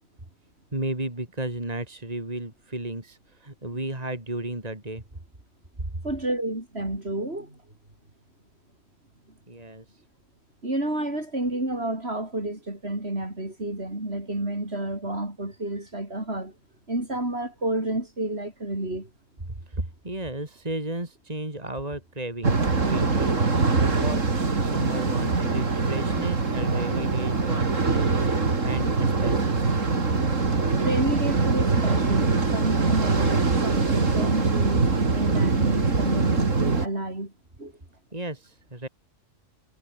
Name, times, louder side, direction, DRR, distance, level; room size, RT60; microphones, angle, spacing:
voice 1, 0.7-5.0 9.5-10.0 19.7-29.8 38.1-38.9, right 1 dB, 30° right, 3.7 m, -34 dB
voice 2, 6.0-7.6 10.6-16.5 16.9-19.1 30.8-37.3 37.6-37.7, right 1 dB, 50° right, 6.3 m, -30 dB
sound 1, 22.4-36.9, right 4 dB, 65° right, 3.1 m, -23 dB
omnidirectional pair, 1.4 m